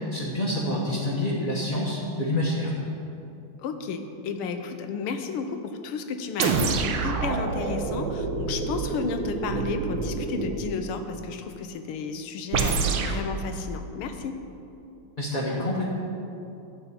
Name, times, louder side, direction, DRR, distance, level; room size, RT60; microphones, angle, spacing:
voice 1, 0.0-2.7 15.2-15.8, left 1 dB, 30° left, -6 dB, 1.0 m, -27 dB
voice 2, 3.6-14.4, left 5 dB, 90° left, 7 dB, 1.7 m, -33 dB
sound 1, 6.4-10.7 12.5-13.2, right 4 dB, 85° right, 1.7 m, -27 dB
11.0 x 5.8 x 8.3 m, 2.7 s
omnidirectional pair, 2.3 m